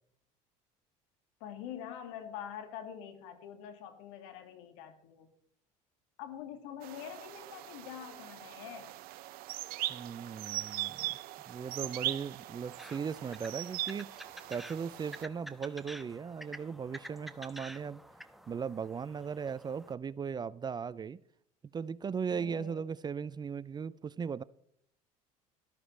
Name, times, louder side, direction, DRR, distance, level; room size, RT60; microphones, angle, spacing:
voice 1, 1.4-5.3 6.2-8.9 22.3-22.8, left 9 dB, 75° left, 2.2 m, -45 dB
sound 1, 6.8-15.3, right 16 dB, 60° right, 0.8 m, -40 dB
voice 2, 9.9-11.1 11.5-14.2 14.5-18.0 18.5-21.2 21.7-24.4, right 6 dB, 25° right, 0.4 m, -38 dB
sound 2, 12.7-19.9, equal, ahead, 1.0 m, -50 dB
13.0 x 13.0 x 3.3 m
supercardioid pair, 85°, 17 cm